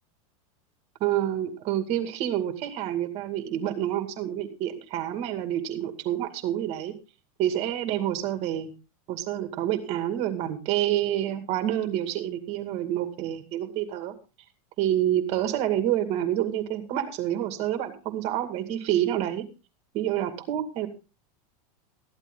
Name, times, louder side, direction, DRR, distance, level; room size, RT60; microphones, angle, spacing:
voice 1, 1.0-6.9 7.4-8.7 9.1-14.1 14.8-19.4 19.9-20.9, right 12 dB, 35° right, 7 dB, 2.4 m, -28 dB
14.0 x 11.5 x 3.9 m, 0.31 s
supercardioid pair, 175°, 19 cm